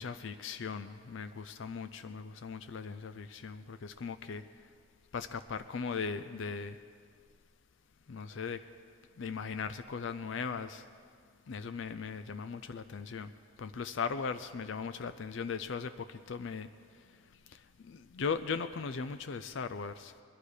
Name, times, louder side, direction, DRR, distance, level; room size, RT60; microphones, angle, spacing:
voice 1, 0.0-4.4 5.1-6.8 8.1-8.6 9.2-10.8 11.5-13.3 13.6-16.7 17.5-20.1, left 5 dB, 60° left, 10 dB, 0.4 m, -38 dB
21.0 x 11.5 x 5.0 m, 2.1 s
head